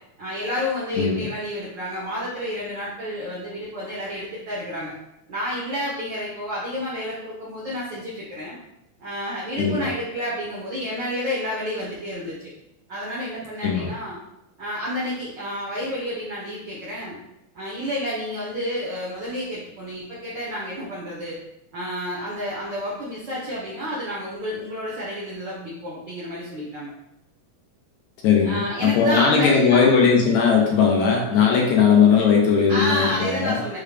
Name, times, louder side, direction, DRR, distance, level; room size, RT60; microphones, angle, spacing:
voice 1, 0.2-4.9 5.3-8.6 9.0-12.5 12.9-14.2 14.6-17.2 17.5-21.4 21.7-26.9 28.4-29.9 32.7-33.8, equal, 80° right, -7 dB, 1.0 m, -30 dB
voice 2, 1.0-1.3 9.6-9.9 13.6-13.9 28.2-33.6, left 6 dB, 75° left, -1 dB, 1.9 m, -18 dB
6.6 x 2.3 x 3.3 m, 0.86 s
omnidirectional pair, 3.7 m